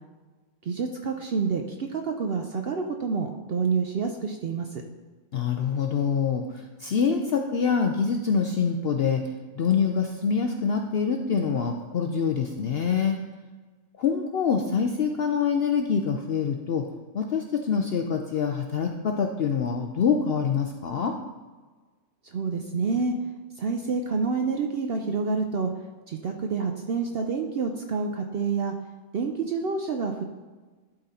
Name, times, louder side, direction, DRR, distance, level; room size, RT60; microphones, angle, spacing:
voice 1, 0.6-4.8 22.2-23.1 23.6-25.7 26.1-28.7 29.1-30.2, right 4 dB, 60° right, 4 dB, 0.6 m, -28 dB
voice 2, 5.3-13.2 14.0-16.9 17.1-21.2, left 6 dB, 65° left, 4 dB, 0.6 m, -25 dB
11.5 x 3.9 x 4.2 m, 1.3 s
omnidirectional pair, 1.5 m